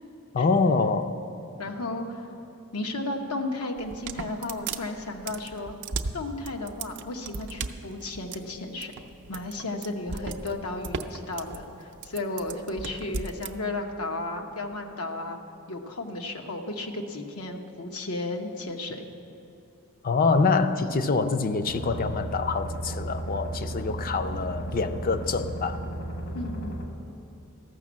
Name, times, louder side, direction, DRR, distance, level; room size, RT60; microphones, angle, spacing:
voice 1, 0.3-1.2 20.0-25.8, left 4 dB, 40° left, 10 dB, 0.5 m, -25 dB
voice 2, 1.6-2.3 2.7-5.8 6.1-8.9 9.3-15.4 15.7-19.0 26.3-26.8, left 2 dB, 85° left, 4 dB, 1.0 m, -34 dB
sound 1, 3.8-13.5, right 4 dB, 55° right, 0.5 m, -36 dB
sound 2, 21.7-26.9, right 1 dB, 60° left, 1.2 m, -34 dB
14.0 x 6.0 x 7.4 m, 2.9 s
head